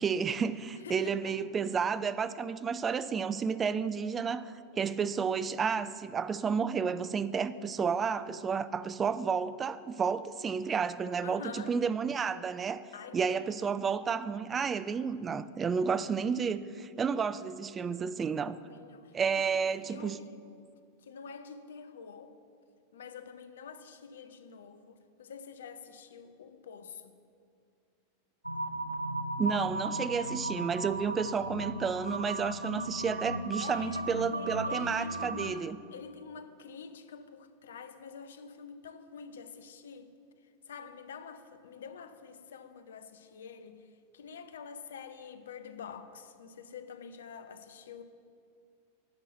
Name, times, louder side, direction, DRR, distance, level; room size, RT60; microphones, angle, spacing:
voice 1, 0.0-12.8 13.1-18.6 19.1-20.2 29.4-35.8, right 6 dB, 20° right, 0.3 m, -31 dB
voice 2, 0.8-1.3 11.2-11.8 12.9-13.6 18.6-20.4 21.0-22.4 22.9-27.1 30.1-30.5 33.6-40.1 40.7-43.9 44.1-48.0, left 6 dB, 65° left, 0.5 m, -47 dB
sound 1, 28.4-35.5, right 1 dB, 90° right, 0.4 m, -36 dB
8.7 x 5.6 x 7.7 m
figure-of-eight pair, 90°, 0 cm